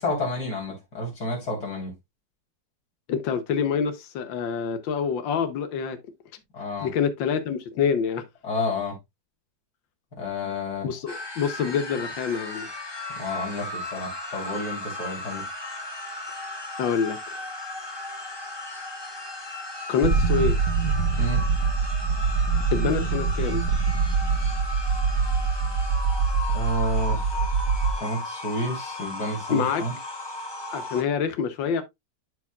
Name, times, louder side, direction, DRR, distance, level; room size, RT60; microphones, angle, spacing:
voice 1, 0.0-1.9 6.5-6.9 8.4-9.0 10.2-10.9 13.2-15.4 21.2-21.4 26.5-27.3 28.0-29.9, left 1 dB, 60° left, 4.0 m, -30 dB
voice 2, 3.1-6.0 6.8-8.2 10.8-12.7 16.8-17.2 19.9-20.6 22.7-23.6 29.5-29.8 30.7-31.8, left 6 dB, 85° left, 1.6 m, -26 dB
sound 1, 11.1-31.0, left 2 dB, 15° left, 1.0 m, -36 dB
sound 2, 20.0-27.9, right 5 dB, 60° right, 1.2 m, -24 dB
12.0 x 4.7 x 2.3 m
omnidirectional pair, 2.0 m